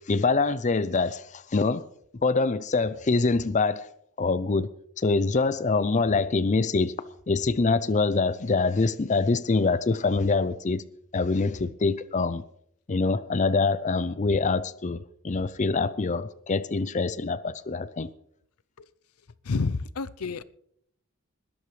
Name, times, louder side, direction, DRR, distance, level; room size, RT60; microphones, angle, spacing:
voice 1, 0.1-1.8 2.2-3.9 4.2-4.7 5.0-6.9 7.3-10.8 11.1-12.4 12.9-18.1, left 3 dB, 35° left, 0.5 m, -25 dB
voice 2, 19.4-20.4, left 4 dB, 90° left, 0.6 m, -29 dB
20.0 x 12.5 x 3.2 m
head